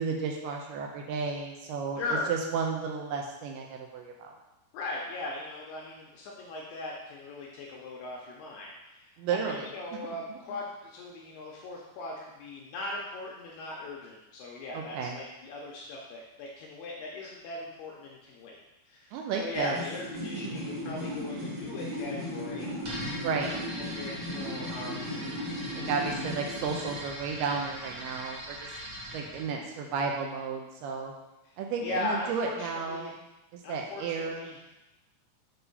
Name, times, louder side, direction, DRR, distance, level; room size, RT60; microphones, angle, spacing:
voice 1, 0.0-2.0 2.3-4.3 9.2-10.0 14.7-15.2 19.1-19.8 20.2-20.6 23.1-23.6 25.9-28.7 29.1-31.1 31.6-33.1 33.5-34.5, right 5 dB, 85° right, 1 dB, 2.3 m, -33 dB
voice 2, 2.0-2.3 4.7-18.6 18.9-22.7 23.8-25.1 31.5-33.1 33.6-34.6, left 2 dB, 80° left, -2 dB, 2.4 m, -39 dB
sound 1, 19.5-27.0, left 1 dB, 65° right, 1.2 m, -37 dB
sound 2, 22.8-29.5, equal, 50° right, 1.8 m, -41 dB
7.8 x 4.2 x 5.4 m, 0.98 s
omnidirectional pair, 5.3 m